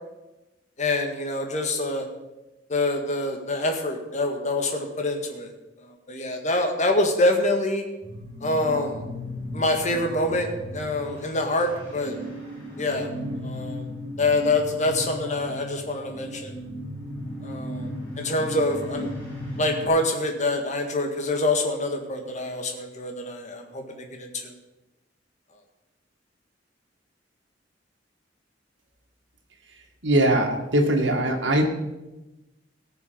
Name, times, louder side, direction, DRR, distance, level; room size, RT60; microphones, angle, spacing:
voice 1, 0.8-2.1 2.7-5.5 5.8-7.8 8.4-9.0 9.5-10.5 10.7-12.2 12.8-13.1 13.4-13.9 14.2-16.6 17.4-17.9 18.2-19.1 19.6-24.5, left 2 dB, 40° left, 3 dB, 1.9 m, -25 dB
sound 1, 8.0-19.9, left 1 dB, 10° left, 4.6 m, -36 dB
voice 2, 30.0-31.7, right 1 dB, 90° right, 2 dB, 2.2 m, -21 dB
18.5 x 7.0 x 5.3 m, 1.0 s
head